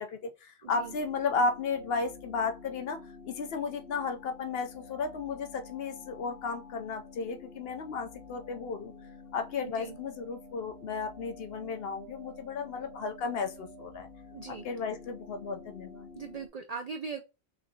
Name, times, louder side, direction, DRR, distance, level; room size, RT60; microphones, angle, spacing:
voice 1, 0.0-3.0 3.2-8.9 9.3-14.1 14.5-16.1, left 4 dB, 60° left, 0.8 m, -34 dB
sound 1, 0.6-16.5, left 3 dB, 85° left, 1.2 m, -49 dB
voice 2, 0.6-0.9 9.6-10.0 14.3-14.7 16.2-17.2, right 5 dB, 75° right, 0.3 m, -40 dB
5.8 x 2.7 x 2.7 m
omnidirectional pair, 1.2 m